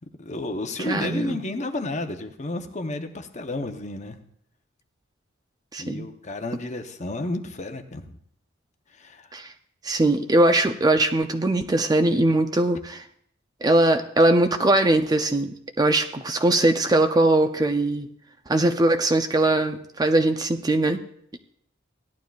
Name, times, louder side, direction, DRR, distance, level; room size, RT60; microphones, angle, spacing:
voice 1, 0.2-4.2 5.8-8.2 8.9-9.4, left 2 dB, 35° left, 7 dB, 0.8 m, -32 dB
voice 2, 0.9-1.4 5.7-6.1 9.3-9.5 9.8-13.0 13.6-18.1 18.5-21.0, right 2 dB, 20° right, 7 dB, 0.5 m, -21 dB
17.0 x 11.5 x 2.4 m, 0.69 s
head